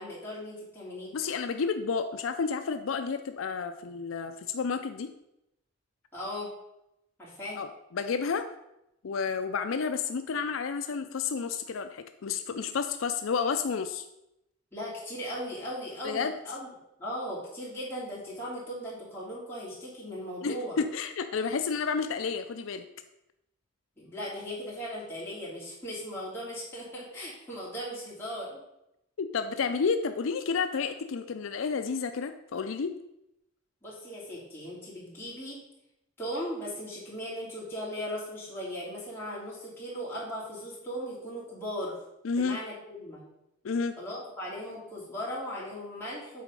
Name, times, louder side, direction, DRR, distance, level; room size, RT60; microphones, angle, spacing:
voice 1, 0.0-1.1 6.1-6.5 7.2-7.6 14.7-16.7 17.0-20.8 24.0-28.6 33.8-35.6 36.2-42.0 42.4-43.2 44.0-46.4, equal, 10° left, -8 dB, 3.0 m, -38 dB
voice 2, 1.1-5.1 7.6-8.5 9.0-14.0 16.0-16.3 20.4-22.8 29.2-32.9 42.2-42.6 43.6-44.0, left 5 dB, 80° left, 9 dB, 0.5 m, -31 dB
7.6 x 4.2 x 5.3 m, 0.85 s
head